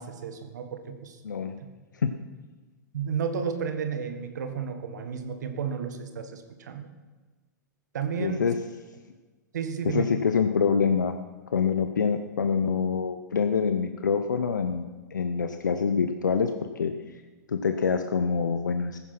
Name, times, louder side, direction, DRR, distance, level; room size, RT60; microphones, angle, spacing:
voice 1, 0.0-1.2 1.6-1.7 2.9-6.9 7.9-8.4 9.5-10.1, right 6 dB, 70° right, 8 dB, 1.8 m, -32 dB
voice 2, 1.2-1.5 2.0-2.1 8.2-8.5 9.8-11.1 11.5-16.5 16.8-16.9 17.5-19.0, left 6 dB, 80° left, 8 dB, 0.9 m, -25 dB
14.5 x 10.0 x 5.9 m, 1.3 s
hypercardioid pair, 110°, 10 cm